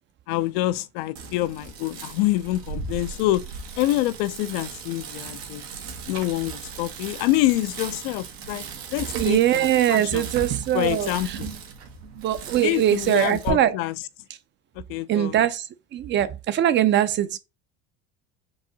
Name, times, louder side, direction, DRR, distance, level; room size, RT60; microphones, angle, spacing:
voice 1, 0.3-3.4 3.8-5.6 6.1-8.7 8.9-10.3 10.7-11.5 12.6-13.9 14.8-15.4, left 16 dB, 75° left, 0.5 m, -26 dB
Bicycle, 1.2-13.5, right 5 dB, 85° right, 1.2 m, -37 dB
voice 2, 9.2-11.4 12.1-13.8 15.1-17.4, right 11 dB, 40° right, 0.5 m, -22 dB
4.7 x 2.6 x 3.9 m
supercardioid pair, 110°, 30 cm